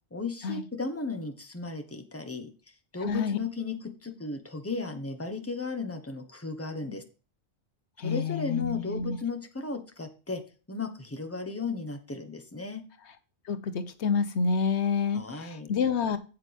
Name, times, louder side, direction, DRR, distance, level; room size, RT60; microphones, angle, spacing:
voice 1, 0.1-2.5 2.9-7.0 8.0-10.4 10.7-12.8 15.1-15.7, left 4 dB, 15° left, 1.2 m, -35 dB
voice 2, 3.0-3.4 8.0-9.2 13.5-16.2, left 5 dB, 85° left, 1.2 m, -28 dB
8.4 x 8.2 x 3.5 m
omnidirectional pair, 1.1 m